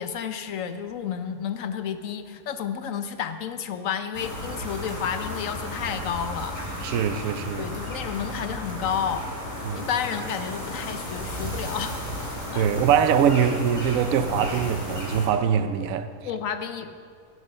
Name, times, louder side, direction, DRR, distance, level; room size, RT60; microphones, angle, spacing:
voice 1, 0.0-7.0 7.6-9.3 9.8-12.0 12.5-12.7 16.2-17.0, left 8 dB, 70° left, 1.1 m, -31 dB
sound 1, 4.1-15.3, left 1 dB, 35° left, 3.2 m, -34 dB
voice 2, 6.8-7.7 9.6-9.9 12.5-16.1, right 8 dB, 70° right, 1.1 m, -23 dB
15.5 x 8.1 x 5.6 m
omnidirectional pair, 1.5 m